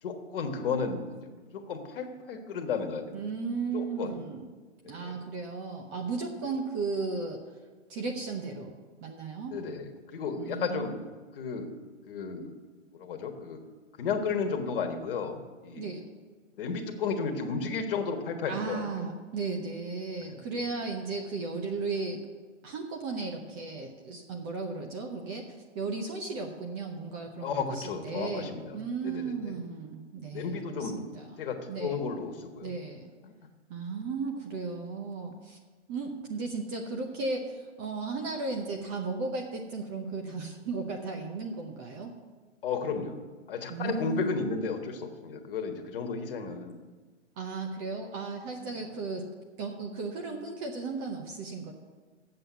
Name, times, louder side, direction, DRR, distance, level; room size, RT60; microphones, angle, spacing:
voice 1, 0.0-1.2 1.5-3.2 3.7-4.1 4.8-5.1 9.5-11.0 11.3-11.7 12.1-12.5 12.9-13.6 14.0-15.8 16.5-19.0 20.3-20.6 27.4-29.5 30.3-31.0 31.4-32.7 33.2-33.3 42.6-43.2 43.5-46.8, left 5 dB, 45° left, 5 dB, 1.4 m, -33 dB
voice 2, 3.1-4.5 4.9-7.4 7.9-9.5 10.4-11.0 15.8-16.0 18.5-22.2 22.6-25.5 25.7-31.4 31.7-32.0 32.6-33.1 33.7-35.6 35.9-42.1 43.7-44.4 47.4-49.3 49.6-51.7, right 4 dB, 20° right, 3 dB, 0.7 m, -35 dB
7.7 x 7.6 x 8.2 m, 1.4 s
hypercardioid pair, 145°, 37 cm